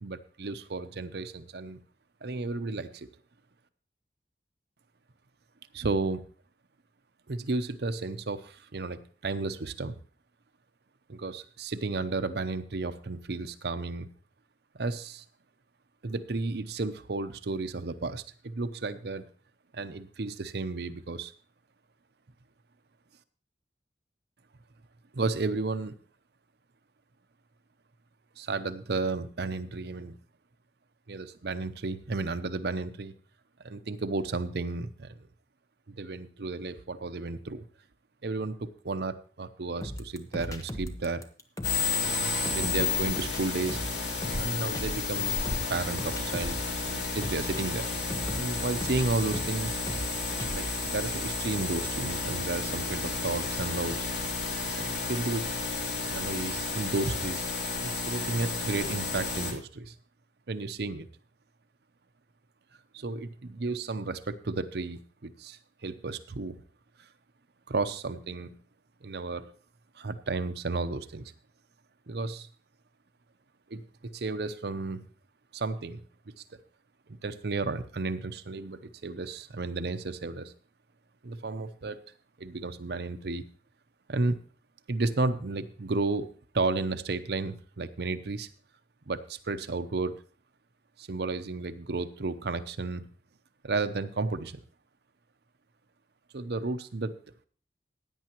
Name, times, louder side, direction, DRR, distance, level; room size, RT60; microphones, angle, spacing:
voice 1, 0.0-1.8 2.2-3.1 5.7-6.2 7.3-10.0 11.1-14.1 14.7-15.2 16.0-19.2 19.7-21.3 25.1-25.9 28.4-30.1 31.1-33.1 33.6-35.2 35.9-37.6 38.2-41.2 41.9-43.8 44.4-45.3 45.7-47.9 48.3-49.8 50.5-54.1 54.8-55.6 56.1-57.5 57.8-59.9 60.5-61.1 62.9-66.6 67.7-68.6 69.0-69.5 70.0-71.3 72.1-72.5 73.7-75.0 75.5-76.0 76.4-76.6 77.2-80.5 81.2-82.0 82.4-83.4 84.1-84.4 84.9-88.5 89.1-90.1 91.0-93.0 93.6-94.6 96.3-97.2, right 3 dB, 65° right, 11 dB, 0.7 m, -33 dB
sound 1, 39.8-50.9, equal, 20° left, 1.0 m, -38 dB
sound 2, 41.6-59.5, left 3 dB, 80° left, 2.7 m, -32 dB
16.0 x 9.6 x 3.0 m, 0.39 s
head